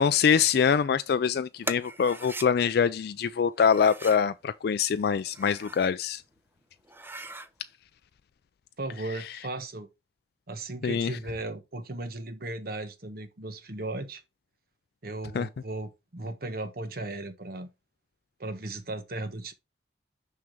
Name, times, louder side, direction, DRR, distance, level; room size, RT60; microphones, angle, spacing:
voice 1, 0.0-6.2 10.8-11.2 15.3-15.5, left 7 dB, 60° left, 0.3 m, -24 dB
sound 1, 1.6-2.5 3.6-4.3 5.2-5.9 6.4-6.5 6.8-7.5, right 2 dB, 10° right, 0.5 m, -39 dB
voice 2, 8.8-9.9 10.5-14.2 15.0-17.7 18.4-19.5, right 2 dB, 55° right, 1.1 m, -36 dB
6.1 x 5.8 x 3.6 m
head